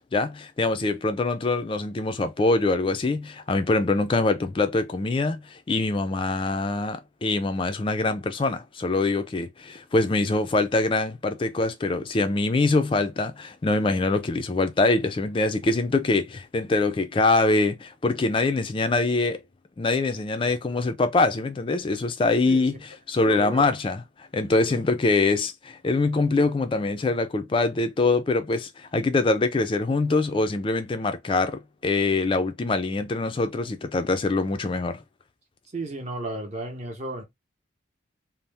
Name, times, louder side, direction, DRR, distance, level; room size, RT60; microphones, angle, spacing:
voice 1, 0.1-19.4 19.8-35.0, left 3 dB, 25° left, 0.3 m, -24 dB
voice 2, 23.2-23.6 24.5-24.8 35.7-37.2, right 1 dB, 35° right, 0.7 m, -34 dB
2.7 x 2.0 x 3.2 m
head